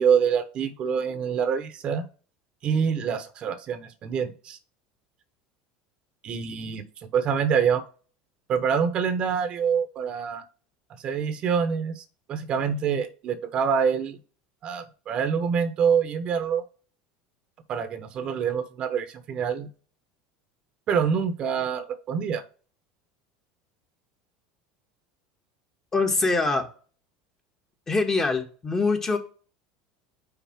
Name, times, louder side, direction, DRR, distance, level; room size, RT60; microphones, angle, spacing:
voice 1, 0.0-2.0 2.6-4.6 6.2-7.8 8.5-10.4 11.0-14.2 14.6-16.6 17.7-19.7 20.9-22.4, right 7 dB, 45° right, 11 dB, 1.0 m, -26 dB
voice 2, 25.9-26.7 27.9-29.2, left 3 dB, 20° left, 5 dB, 1.3 m, -24 dB
5.9 x 3.9 x 5.7 m, 0.38 s
supercardioid pair, 105°, 2 cm